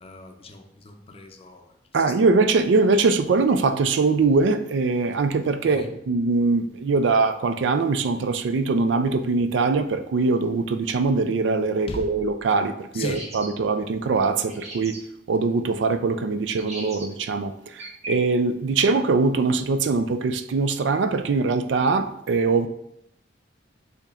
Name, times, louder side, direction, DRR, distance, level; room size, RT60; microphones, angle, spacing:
voice 1, 0.0-1.7 5.6-5.9 11.9-12.1 12.9-13.3, left 1 dB, 30° left, 4 dB, 0.5 m, -36 dB
voice 2, 1.9-15.0 15.3-22.7, right 4 dB, 75° right, 9 dB, 0.4 m, -22 dB
sound 1, 13.0-13.5 14.5-15.0 16.6-17.1 17.8-18.2, right 2 dB, 35° right, 1.1 m, -37 dB
7.0 x 2.9 x 2.4 m, 0.76 s
head